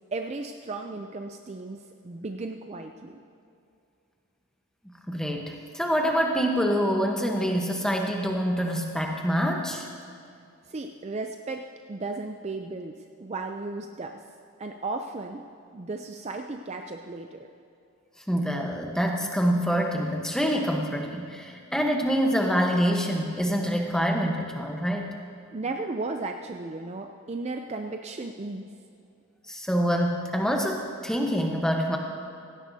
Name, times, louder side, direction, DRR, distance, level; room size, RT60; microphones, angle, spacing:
voice 1, 0.1-3.2 10.7-14.2 14.6-15.4 15.7-17.5 25.5-28.7, right 3 dB, 30° right, 5 dB, 0.4 m, -35 dB
voice 2, 4.8-9.9 18.3-25.1 29.5-32.0, equal, 5° left, 1 dB, 1.0 m, -26 dB
17.0 x 16.5 x 2.8 m, 2.5 s
head